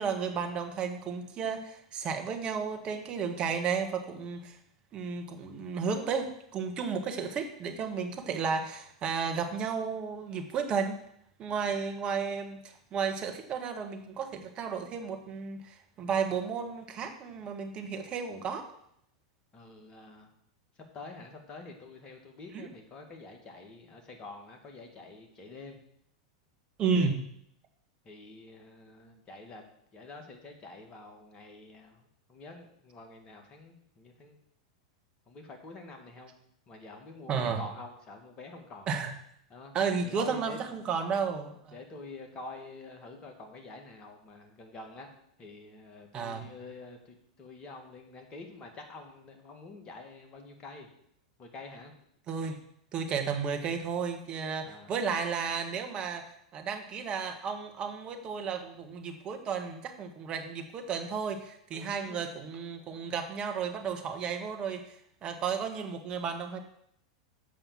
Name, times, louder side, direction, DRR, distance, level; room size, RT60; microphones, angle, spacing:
voice 1, 0.0-4.6 4.9-11.0 11.4-18.7 22.5-22.7 26.8-27.2 37.3-37.7 38.9-39.1 39.7-41.8 46.1-46.5 52.3-52.6 52.9-56.2 56.5-64.8 65.2-66.6, right 6 dB, 35° right, 5 dB, 1.5 m, -33 dB
voice 2, 19.5-20.3 20.9-25.8 27.0-27.1 28.1-29.6 29.9-32.0 32.3-34.4 35.3-36.3 36.7-38.9 39.5-39.7 40.0-40.6 41.7-45.1 45.4-47.0 47.4-50.9 51.4-51.9 54.6-54.9 61.7-62.3, left 3 dB, 30° left, 3 dB, 2.1 m, -47 dB
7.7 x 5.5 x 7.3 m, 0.72 s
hypercardioid pair, 95°, 3 cm